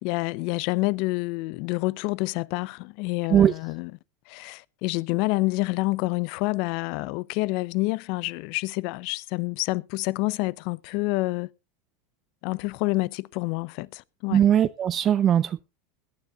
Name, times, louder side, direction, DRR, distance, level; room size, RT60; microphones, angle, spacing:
voice 1, 0.0-3.9 4.3-11.5 12.4-14.4, left 23 dB, 60° left, 0.5 m, -28 dB
voice 2, 14.3-15.6, right 10 dB, 40° right, 0.5 m, -20 dB
21.0 x 9.6 x 2.3 m
hypercardioid pair, 100°, 0 cm